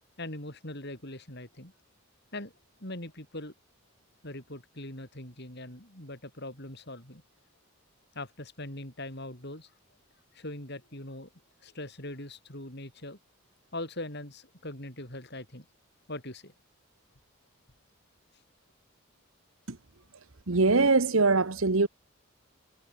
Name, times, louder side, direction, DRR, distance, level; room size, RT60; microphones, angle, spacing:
voice 1, 0.2-1.7 2.3-2.5 2.8-3.5 4.2-7.2 8.1-9.7 10.3-11.3 11.6-13.2 13.7-15.7 16.1-16.5, left 1 dB, 50° left, 7.0 m, -41 dB
voice 2, 20.5-21.9, right 3 dB, 70° right, 1.2 m, -23 dB
head